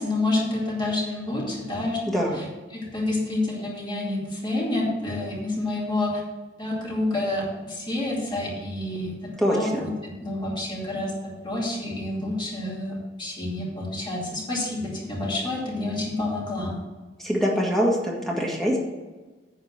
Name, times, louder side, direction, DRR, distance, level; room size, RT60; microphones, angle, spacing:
voice 1, 0.0-2.4 2.7-6.2 6.6-16.8, left 2 dB, 25° left, -4 dB, 2.5 m, -28 dB
voice 2, 2.1-2.5 9.4-9.8 17.2-18.8, equal, ahead, -2 dB, 1.9 m, -24 dB
9.8 x 4.4 x 7.6 m, 1.3 s
head